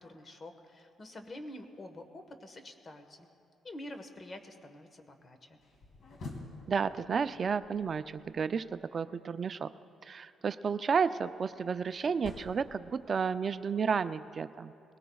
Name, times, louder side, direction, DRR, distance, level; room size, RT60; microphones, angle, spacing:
voice 1, 0.0-3.3 3.6-5.6, left 1 dB, 35° left, 7 dB, 1.3 m, -47 dB
sound 1, 5.6-8.8 11.0-13.5, left 2 dB, 55° left, 2.3 m, -49 dB
voice 2, 6.7-9.7 10.0-14.7, right 6 dB, 45° right, 12 dB, 0.4 m, -32 dB
21.5 x 18.0 x 2.3 m, 2.8 s
cardioid pair, 90°, 0 cm